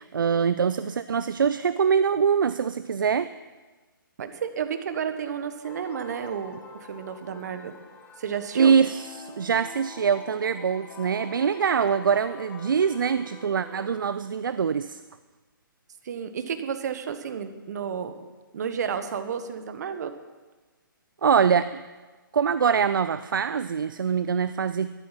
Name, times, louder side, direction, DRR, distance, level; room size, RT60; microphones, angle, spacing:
voice 1, 0.0-3.3 8.6-15.0 21.2-21.8 22.3-24.9, right 6 dB, 65° right, 14 dB, 0.5 m, -24 dB
voice 2, 4.2-7.7 8.2-8.7 16.0-18.2 18.5-20.1, right 7 dB, 50° right, 9 dB, 1.3 m, -31 dB
sound 1, 5.6-14.0, left 3 dB, 15° left, 1.5 m, -46 dB
13.0 x 12.0 x 5.9 m, 1.3 s
figure-of-eight pair, 135°, 12 cm